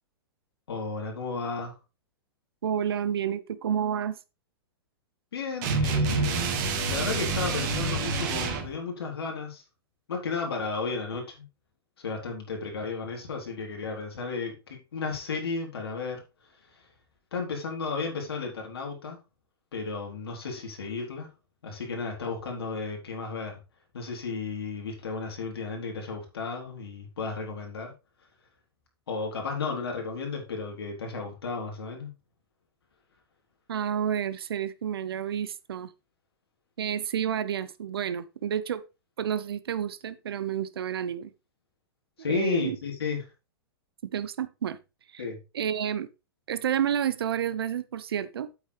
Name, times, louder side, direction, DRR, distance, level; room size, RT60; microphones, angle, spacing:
voice 1, 0.7-1.8 5.3-9.6 10.1-11.3 12.0-16.2 17.3-19.2 19.7-21.3 21.6-23.6 23.9-27.9 29.1-32.1 42.2-43.2 45.2-45.4, left 4 dB, 80° left, 3.6 m, -33 dB
voice 2, 2.6-4.2 33.7-35.9 36.8-38.8 39.2-41.3 42.2-42.8 44.0-44.8 45.1-45.3 45.5-46.1 46.5-48.5, right 9 dB, 80° right, 0.8 m, -30 dB
sound 1, 5.6-8.7, right 3 dB, 50° right, 2.7 m, -27 dB
8.4 x 8.3 x 3.3 m
hypercardioid pair, 115°, 13 cm